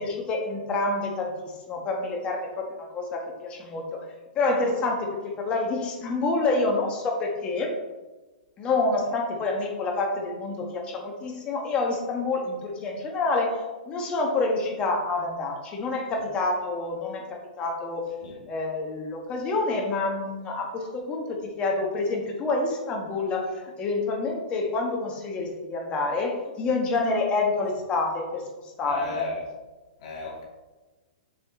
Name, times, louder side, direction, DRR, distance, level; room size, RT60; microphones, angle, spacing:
voice 1, 0.0-4.0 4.3-7.8 8.6-18.1 18.5-29.2, left 3 dB, 20° left, 1 dB, 1.4 m, -28 dB
voice 2, 28.8-29.5 30.0-30.4, left 3 dB, 50° left, -3 dB, 2.2 m, -33 dB
7.2 x 4.4 x 4.2 m, 1.2 s
hypercardioid pair, 150°, 5 cm